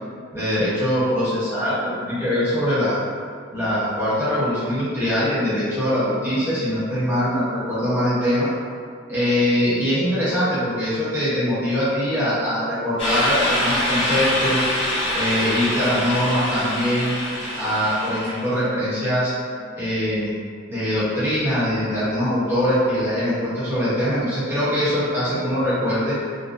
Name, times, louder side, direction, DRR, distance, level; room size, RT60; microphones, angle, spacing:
voice 1, 0.3-3.0 3.5-8.5 9.1-14.7 15.1-17.1 17.5-19.3 19.8-20.4 20.7-26.2, equal, 10° right, -13 dB, 1.0 m, -22 dB
sound 1, 13.0-18.5, left 1 dB, 30° left, 0.5 m, -25 dB
2.6 x 2.1 x 2.5 m, 2.1 s
head